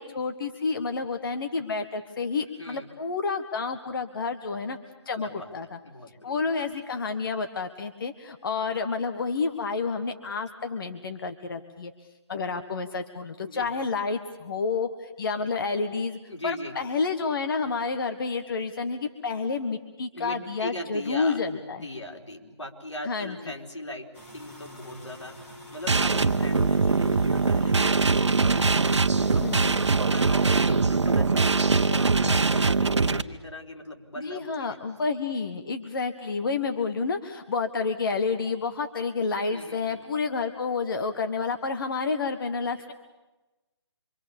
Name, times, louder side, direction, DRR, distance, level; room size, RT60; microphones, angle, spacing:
voice 1, 0.0-4.8 5.0-5.7 6.2-11.9 12.3-16.2 16.4-21.9 23.0-23.4 29.4-29.9 34.2-42.9, left 4 dB, 50° left, 7 dB, 1.6 m, -29 dB
voice 2, 5.2-6.4 13.4-13.7 16.3-16.8 20.1-28.6 29.3-34.8 39.5-40.1, left 1 dB, 90° left, 1 dB, 4.2 m, -39 dB
sound 1, 24.1-30.5, equal, 25° left, 7.5 m, -46 dB
sound 2, 25.9-33.2, right 4 dB, 75° right, 1.2 m, -22 dB
26.5 x 24.5 x 7.1 m, 1.1 s
figure-of-eight pair, 155°, 15 cm